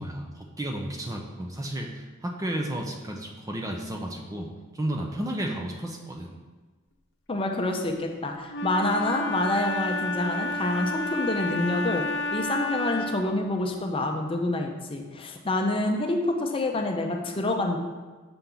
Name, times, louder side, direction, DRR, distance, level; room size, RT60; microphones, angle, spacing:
voice 1, 0.0-4.5 4.7-6.4, right 1 dB, 15° right, 2 dB, 0.5 m, -32 dB
voice 2, 7.3-17.8, left 2 dB, 25° left, 2 dB, 0.6 m, -27 dB
Wind instrument woodwind instrument, 8.5-13.3, left 1 dB, 60° left, 0.8 m, -31 dB
6.8 x 5.8 x 3.8 m, 1.3 s
head